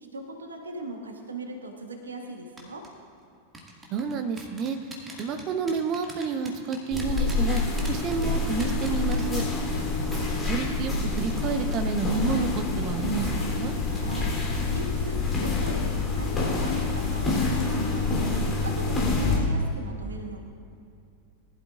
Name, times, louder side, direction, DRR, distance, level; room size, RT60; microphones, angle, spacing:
voice 1, 0.1-2.8 13.9-14.4 14.7-18.3 18.6-20.4, right 2 dB, 75° right, 3 dB, 1.2 m, -38 dB
sound 1, 2.6-2.9 3.5-9.8 10.1-10.3 10.6-10.7 11.2-11.5 11.7-12.0 12.3-12.5, right 2 dB, 15° right, 2.2 m, -43 dB
voice 2, 3.9-4.8 5.2-7.6 7.9-9.4 10.0-13.7, right 5 dB, 35° right, 8 dB, 0.9 m, -30 dB
sound 2, 6.9-19.4, left 3 dB, 20° left, 3.4 m, -27 dB
20.0 x 12.0 x 2.5 m, 2.5 s
figure-of-eight pair, 90°, 0 cm